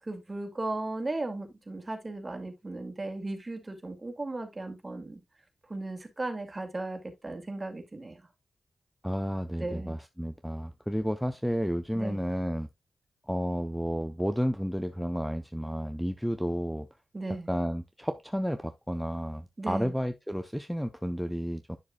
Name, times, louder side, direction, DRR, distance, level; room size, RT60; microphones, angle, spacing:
voice 1, 0.0-5.2 5.7-8.3 9.6-10.0 11.9-12.2 17.1-17.5 19.6-19.9, right 2 dB, 30° right, 2.4 m, -36 dB
voice 2, 9.0-12.7 13.3-16.9 17.5-21.8, equal, ahead, 0.7 m, -31 dB
9.7 x 6.6 x 2.3 m
cardioid pair, 60°, 0 cm